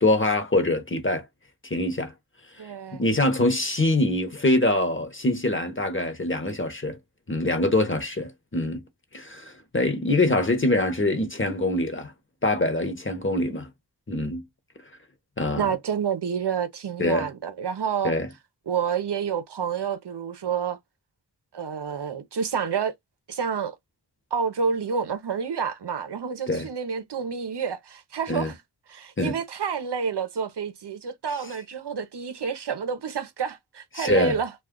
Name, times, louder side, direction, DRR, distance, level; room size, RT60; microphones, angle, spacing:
voice 1, 0.0-1.2 1.6-2.1 3.0-7.0 7.3-8.8 9.1-12.1 12.4-13.7 14.1-14.4 15.4-15.6 17.0-17.3 18.0-18.3 26.5-26.7 28.3-28.5 29.2-29.4 34.0-34.4, left 2 dB, 30° left, 0.9 m, -24 dB
voice 2, 2.6-3.0 15.6-18.1 18.7-20.8 21.5-22.9 23.3-23.8 24.3-28.6 28.9-34.5, right 6 dB, 65° right, 0.7 m, -29 dB
2.4 x 2.3 x 3.6 m
cardioid pair, 40°, 43 cm